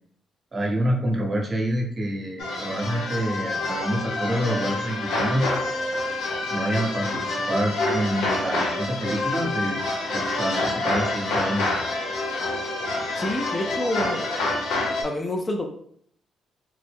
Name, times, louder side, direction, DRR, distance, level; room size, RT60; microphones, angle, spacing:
voice 1, 0.5-5.5 6.2-9.8 10.1-11.6, equal, 30° right, 0 dB, 0.9 m, -27 dB
sound 1, 2.4-15.0, left 2 dB, 80° left, 0.8 m, -27 dB
voice 2, 13.2-14.3 15.0-15.7, left 1 dB, 30° left, 3 dB, 0.4 m, -27 dB
3.4 x 2.1 x 3.4 m, 0.66 s
cardioid pair, 90°, 0 cm